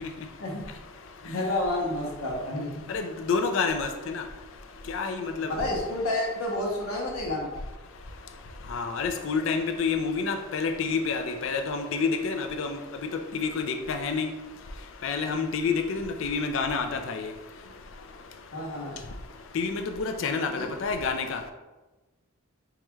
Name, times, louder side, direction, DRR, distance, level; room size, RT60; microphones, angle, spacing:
voice 1, 1.2-2.9 5.5-7.5 18.5-19.0 20.6-20.7, left 1 dB, 80° left, -1 dB, 0.9 m, -30 dB
voice 2, 2.9-4.2 4.9-5.5 8.7-12.8 13.3-14.3 15.0-17.3 19.5-21.4, left 5 dB, 60° left, 6 dB, 0.4 m, -28 dB
4.7 x 3.0 x 2.3 m, 1.1 s
head